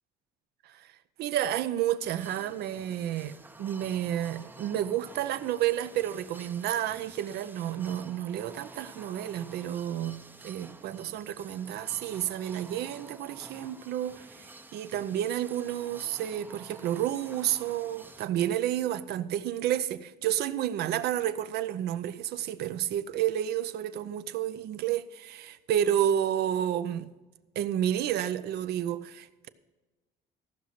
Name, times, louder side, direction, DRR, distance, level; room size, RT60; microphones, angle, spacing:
voice 1, 1.2-27.1 27.6-29.5, right 11 dB, 75° right, 0.6 m, -30 dB
sound 1, 2.0-18.3, right 2 dB, 10° right, 0.6 m, -50 dB
15.0 x 6.0 x 5.8 m
cardioid pair, 110°, 17 cm